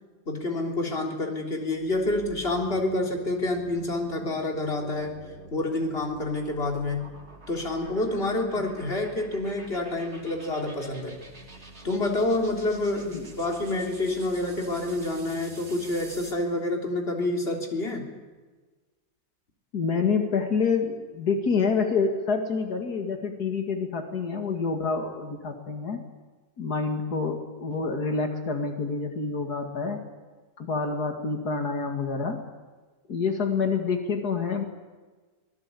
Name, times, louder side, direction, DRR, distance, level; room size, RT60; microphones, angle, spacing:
voice 1, 0.3-5.2 5.5-7.1 7.5-11.2 11.8-18.1, left 2 dB, 40° left, 2 dB, 3.6 m, -28 dB
sound 1, 1.8-16.5, right 2 dB, 45° right, 3.3 m, -47 dB
voice 2, 19.7-26.0 26.6-30.0 30.6-32.4 33.1-34.6, left 5 dB, 85° left, 5 dB, 2.6 m, -27 dB
24.5 x 19.5 x 8.4 m, 1.3 s
omnidirectional pair, 1.6 m